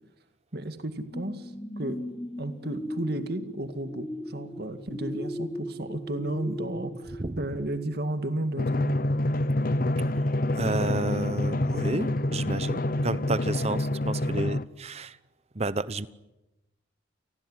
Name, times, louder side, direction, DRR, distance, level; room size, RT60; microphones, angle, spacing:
voice 1, 0.5-2.0 2.4-9.0, right 1 dB, 55° right, 9 dB, 2.1 m, -33 dB
sound 1, 1.1-8.5 9.0-9.1, left 1 dB, 15° left, 1.2 m, -38 dB
Drum, 8.6-14.6, left 1 dB, 45° left, 0.9 m, -27 dB
voice 2, 10.5-15.2 15.5-16.1, right 2 dB, 35° right, 16 dB, 1.0 m, -31 dB
29.5 x 19.0 x 9.9 m, 0.98 s
head